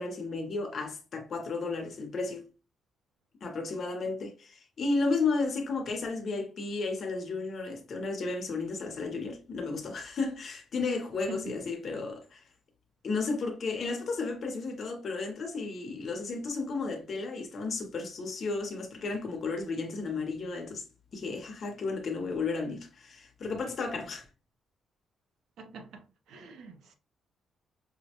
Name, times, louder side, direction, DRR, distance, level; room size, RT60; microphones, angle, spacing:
voice 1, 0.0-2.5 3.4-12.4 13.0-20.8 21.1-24.3, left 3 dB, 40° left, 0.8 m, -33 dB
voice 2, 25.6-26.9, right 4 dB, 75° right, 0.6 m, -45 dB
5.2 x 2.1 x 2.9 m
cardioid pair, 160°, 0 cm